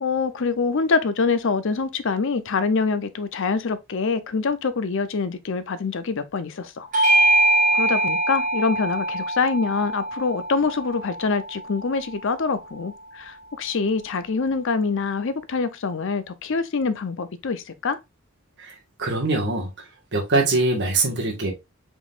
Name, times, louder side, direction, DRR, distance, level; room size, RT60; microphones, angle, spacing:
voice 1, 0.0-6.9 7.7-18.0, left 4 dB, 60° left, 0.6 m, -25 dB
Bell / Doorbell, 6.9-11.8, right 1 dB, 40° right, 1.5 m, -22 dB
voice 2, 18.6-21.5, right 2 dB, 55° right, 1.5 m, -24 dB
5.0 x 3.8 x 2.4 m
head